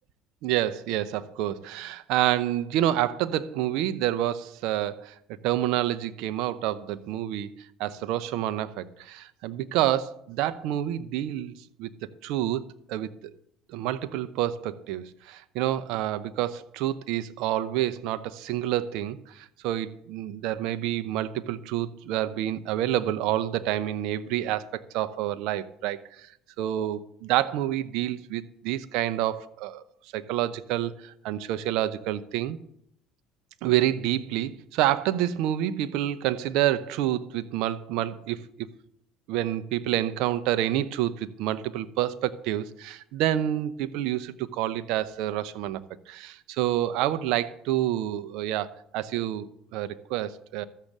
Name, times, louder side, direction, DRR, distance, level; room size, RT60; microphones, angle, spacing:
voice 1, 0.4-7.5 7.8-11.5 11.8-11.9 12.2-13.1 13.7-26.3 26.6-29.8 30.1-32.6 33.6-38.7 39.3-45.8 46.1-50.6, right 13 dB, 70° right, 12 dB, 0.7 m, -28 dB
13.5 x 6.6 x 7.4 m, 0.72 s
supercardioid pair, 80°, 0 cm